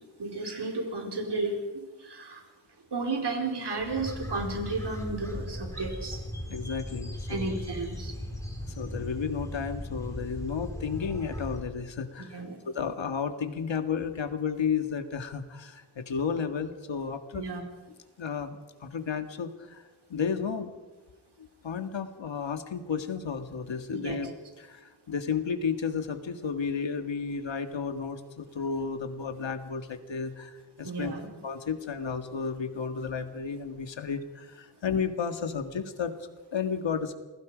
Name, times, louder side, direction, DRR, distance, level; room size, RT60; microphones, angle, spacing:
voice 1, 0.2-2.4 2.9-6.2 7.3-8.1 12.3-12.6 17.3-17.6 24.0-24.2 30.8-31.3, right 3 dB, 60° right, 2 dB, 5.0 m, -33 dB
sound 1, 3.8-11.6, equal, 5° left, 4.8 m, -38 dB
voice 2, 6.5-7.6 8.6-17.5 18.2-19.8 20.1-20.7 21.4-24.3 24.6-31.1 31.4-37.1, left 6 dB, 75° left, 7 dB, 2.0 m, -33 dB
28.5 x 21.5 x 5.2 m, 1.2 s
wide cardioid pair, 115°, 45 cm